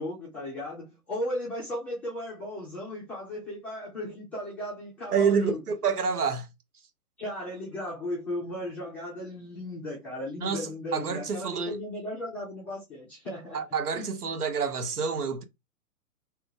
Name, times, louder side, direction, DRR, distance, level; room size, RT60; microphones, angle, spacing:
voice 1, 0.0-5.6 7.2-13.6 13.9-14.1, left 1 dB, 5° left, 0.4 m, -36 dB
voice 2, 5.1-6.5 10.4-11.8 13.5-15.4, right 6 dB, 85° right, 0.9 m, -28 dB
2.9 x 2.4 x 3.4 m
hypercardioid pair, 130°, 44 cm